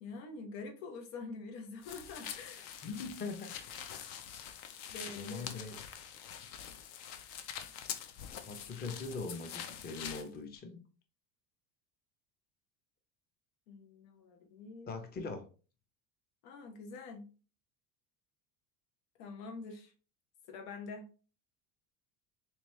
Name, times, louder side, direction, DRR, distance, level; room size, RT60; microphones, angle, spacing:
voice 1, 0.0-2.8 4.9-5.5 13.7-15.0 16.4-17.3 19.2-19.9 20.5-21.1, left 4 dB, 80° left, 1.1 m, -46 dB
sound 1, 1.8-10.3, left 8 dB, 60° left, 0.7 m, -45 dB
voice 2, 2.8-3.5 5.1-5.8 8.5-10.8 14.9-15.5, left 4 dB, 20° left, 0.6 m, -41 dB
3.4 x 3.1 x 3.0 m
cardioid pair, 135°, 49 cm